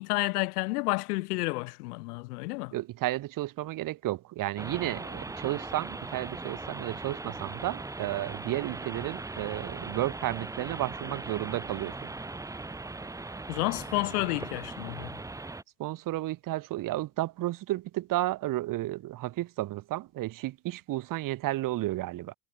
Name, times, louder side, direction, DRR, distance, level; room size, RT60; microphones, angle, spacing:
voice 1, 0.0-2.7 13.5-15.1, left 23 dB, 65° left, 1.8 m, -30 dB
voice 2, 2.7-12.1 15.8-22.3, right 16 dB, 40° right, 1.2 m, -32 dB
sound 1, 4.6-15.6, right 3 dB, 5° right, 0.8 m, -39 dB
hypercardioid pair, 75°, 49 cm